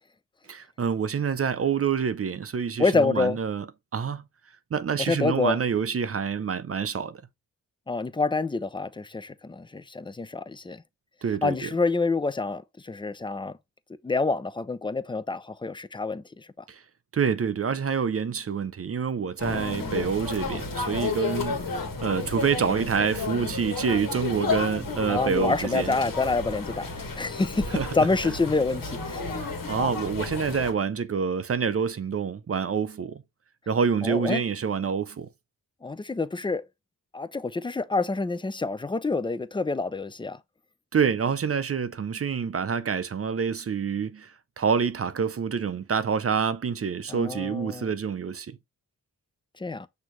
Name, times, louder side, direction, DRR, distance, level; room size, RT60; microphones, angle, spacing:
voice 1, 0.5-3.6 3.9-4.2 4.7-7.2 11.2-11.7 16.7-16.8 17.1-21.6 22.0-25.9 27.7-27.9 29.4-33.2 33.7-35.3 40.9-44.3 44.6-48.6, right 6 dB, 40° right, 0.5 m, -27 dB
voice 2, 2.8-3.4 5.0-5.6 7.9-10.8 11.4-13.5 14.0-16.5 19.5-20.1 25.1-29.4 34.0-34.4 35.8-36.6 37.1-40.4 47.1-47.9 49.6-49.9, left 3 dB, 15° left, 0.4 m, -27 dB
sound 1, 19.4-30.7, left 4 dB, 60° left, 1.5 m, -32 dB
6.2 x 2.8 x 3.0 m
cardioid pair, 60°, 36 cm